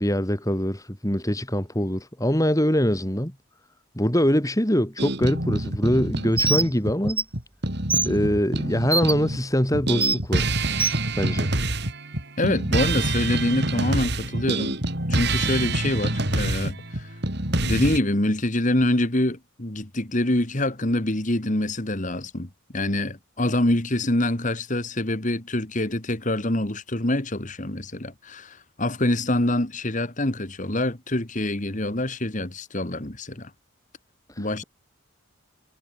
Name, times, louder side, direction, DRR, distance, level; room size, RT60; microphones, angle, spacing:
voice 1, 0.0-3.3 3.9-7.2 8.0-10.6 11.2-11.5 34.3-34.6, equal, 15° left, 3.1 m, -23 dB
sound 1, 5.0-9.4 9.7-18.0, right 2 dB, 50° right, 4.1 m, -26 dB
Bird, 6.4-6.7 7.1-7.2 7.9-8.1 8.9-9.1 10.0-10.2 10.8-11.0, right 3 dB, 5° right, 0.3 m, -22 dB
voice 2, 12.4-14.8 15.1-17.2 17.6-33.5 34.4-34.6, left 1 dB, 35° left, 1.8 m, -25 dB
head